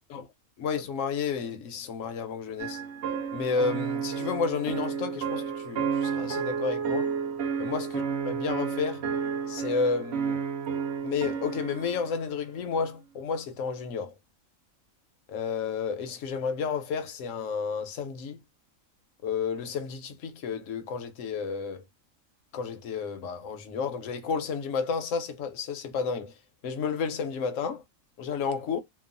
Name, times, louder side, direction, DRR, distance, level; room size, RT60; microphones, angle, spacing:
voice 1, 0.6-2.8 3.3-7.1 7.6-9.0 9.5-10.4 11.0-14.1 15.3-18.4 19.2-21.8 22.5-26.3 26.6-27.8 28.2-28.8, left 5 dB, 70° left, 1.0 m, -31 dB
sound 1, 2.6-12.1, right 6 dB, 60° right, 0.8 m, -31 dB
2.9 x 2.2 x 2.5 m
omnidirectional pair, 1.4 m